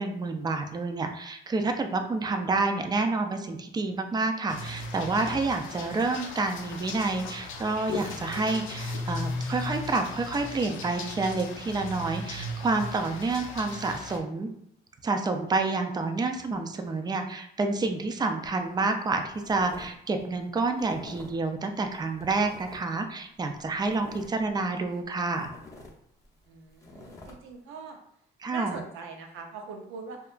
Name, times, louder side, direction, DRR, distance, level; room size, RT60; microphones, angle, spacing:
voice 1, 0.0-14.5 15.0-25.5 28.4-28.8, right 3 dB, 20° right, 6 dB, 0.3 m, -29 dB
sound 1, 4.5-14.2, left 2 dB, 80° left, 0.5 m, -37 dB
sound 2, 18.4-18.7 19.0-19.9 20.2-21.5 21.8-23.0 23.4-25.0 25.3-27.3, left 2 dB, 15° left, 0.6 m, -47 dB
voice 2, 26.5-28.0 28.5-30.2, right 4 dB, 85° right, 3 dB, 0.6 m, -42 dB
2.7 x 2.3 x 2.4 m, 0.72 s
cardioid pair, 90°, 20 cm